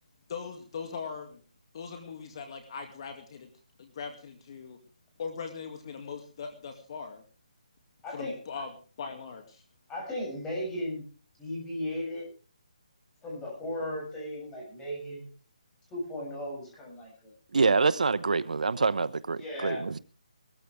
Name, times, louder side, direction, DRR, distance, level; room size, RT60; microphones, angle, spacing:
voice 1, 0.3-1.4 1.7-3.5 3.8-4.8 5.2-7.2 8.1-9.6, left 5 dB, 40° left, 2.2 m, -40 dB
voice 2, 8.0-8.4 9.9-11.0 11.4-12.3 13.2-15.3 15.9-17.3 18.7-18.9 19.4-19.8, left 1 dB, 10° left, 7.2 m, -36 dB
voice 3, 17.5-20.0, right 4 dB, 75° right, 0.8 m, -26 dB
20.5 x 14.0 x 3.4 m
hypercardioid pair, 160°, 4 cm